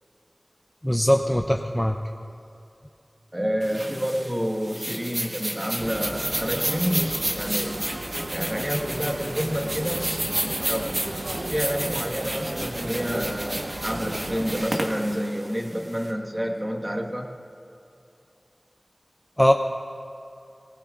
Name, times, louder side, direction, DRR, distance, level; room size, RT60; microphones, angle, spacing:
voice 1, 0.8-2.0 19.4-19.5, equal, 10° left, 4 dB, 0.5 m, -20 dB
voice 2, 3.3-7.8 8.3-17.3, equal, 20° right, 1 dB, 1.4 m, -29 dB
sound 1, 3.6-16.1, right 1 dB, 50° right, 1.5 m, -31 dB
sound 2, 5.8-14.6, right 1 dB, 85° right, 0.8 m, -34 dB
19.5 x 19.0 x 2.5 m, 2.6 s
wide cardioid pair, 55°, 0 cm